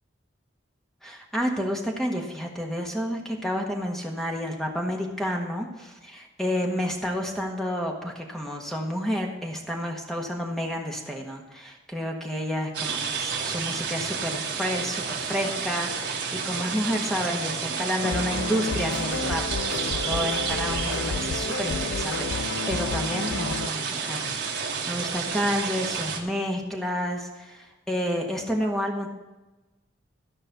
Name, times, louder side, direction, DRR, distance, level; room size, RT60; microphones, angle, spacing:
voice 1, 1.0-19.4 19.7-29.1, equal, ahead, 0 dB, 1.4 m, -30 dB
sound 1, 12.7-26.2, right 6 dB, 60° right, 1.5 m, -30 dB
sound 2, 18.0-23.7, left 4 dB, 90° left, 0.4 m, -31 dB
13.5 x 5.5 x 6.7 m, 1.1 s
head